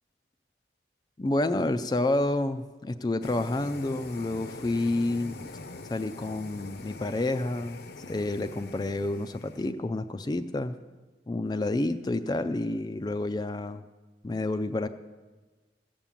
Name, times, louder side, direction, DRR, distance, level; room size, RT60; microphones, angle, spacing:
voice 1, 1.2-5.5 5.9-10.7 11.3-13.8 14.2-14.9, left 2 dB, 20° left, 10 dB, 0.3 m, -29 dB
sound 1, 3.2-9.7, left 3 dB, 60° left, 0.7 m, -44 dB
15.0 x 7.0 x 7.4 m, 1.3 s
head